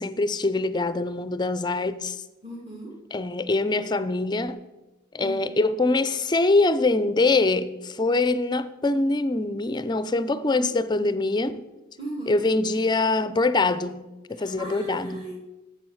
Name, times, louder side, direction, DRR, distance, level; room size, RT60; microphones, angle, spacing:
voice 1, 0.0-2.2 3.1-4.6 5.1-11.7 12.3-14.0 14.3-15.3, left 3 dB, 20° left, 0.4 m, -24 dB
voice 2, 2.4-2.9 5.2-5.6 12.0-12.4 14.4-15.4, equal, 30° right, 1.8 m, -36 dB
7.9 x 7.1 x 7.1 m
head